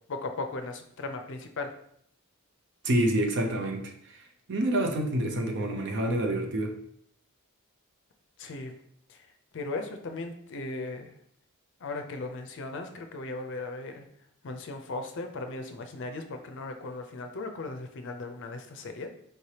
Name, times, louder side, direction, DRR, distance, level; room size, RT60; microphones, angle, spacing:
voice 1, 0.1-1.7 8.4-8.7 9.1-9.2 9.5-11.1 11.8-14.0 14.4-19.1, left 3 dB, 60° left, 6 dB, 0.5 m, -37 dB
voice 2, 2.8-4.2 4.5-6.8, right 1 dB, 55° right, 4 dB, 0.6 m, -27 dB
4.7 x 3.2 x 2.8 m, 0.68 s
head